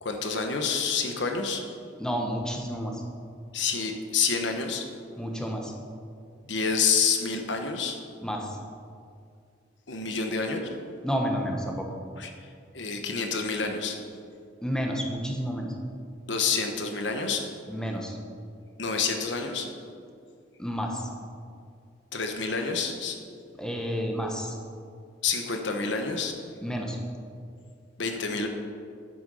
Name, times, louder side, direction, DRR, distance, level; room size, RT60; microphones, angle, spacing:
voice 1, 0.0-1.6 3.5-4.8 6.4-8.0 9.9-10.7 12.2-12.5 12.7-14.0 16.3-17.4 18.8-19.7 22.1-23.2 25.2-26.3 28.0-28.5, left 5 dB, 70° left, 4 dB, 1.2 m, -28 dB
voice 2, 2.0-3.0 5.2-5.7 8.2-8.6 11.0-11.9 14.6-15.7 17.7-18.2 20.6-21.1 23.6-24.6 26.6-27.0, equal, 5° left, 1 dB, 1.1 m, -30 dB
11.0 x 8.1 x 5.6 m, 2.3 s
head